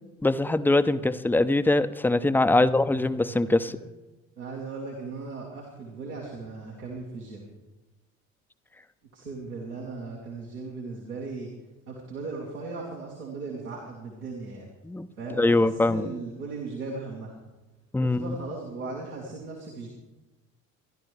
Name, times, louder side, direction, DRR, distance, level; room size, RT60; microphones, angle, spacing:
voice 1, 0.2-3.7 14.8-15.1 15.4-16.1 17.9-18.4, left 2 dB, 5° left, 12 dB, 0.5 m, -23 dB
voice 2, 2.5-3.4 3.7-3.8 4.4-7.4 9.1-11.5 11.9-14.7 15.2-17.3 18.0-19.9, right 3 dB, 90° right, -4 dB, 2.0 m, -37 dB
24.5 x 11.5 x 3.3 m, 1.1 s
figure-of-eight pair, 60°, 43 cm